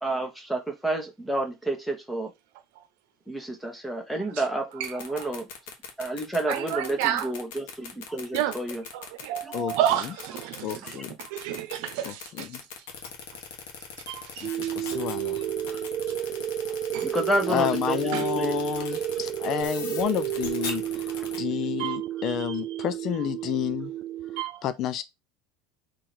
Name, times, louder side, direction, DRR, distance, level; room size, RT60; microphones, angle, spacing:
voice 1, 0.0-2.3 3.3-5.5 6.0-8.8 9.4-9.6 10.8-10.9 17.0-18.0 18.3-18.6 21.1-21.3, right 1 dB, ahead, 1.3 m, -30 dB
sound 1, 4.7-21.4, left 7 dB, 75° left, 1.3 m, -39 dB
voice 2, 4.8-5.3 6.5-7.3 8.3-8.6 8.9-12.5 14.1-14.7 16.9-17.1 18.1-18.3 21.8-22.5 24.4-24.6, right 11 dB, 70° right, 0.9 m, -31 dB
voice 3, 10.6-11.1 12.0-12.6 14.4-15.4 17.5-21.1 21.4-23.9 24.6-25.0, left 11 dB, 45° left, 0.4 m, -30 dB
sound 2, 14.4-24.4, right 12 dB, 50° right, 0.3 m, -31 dB
3.8 x 3.2 x 4.3 m
supercardioid pair, 130°, 0 cm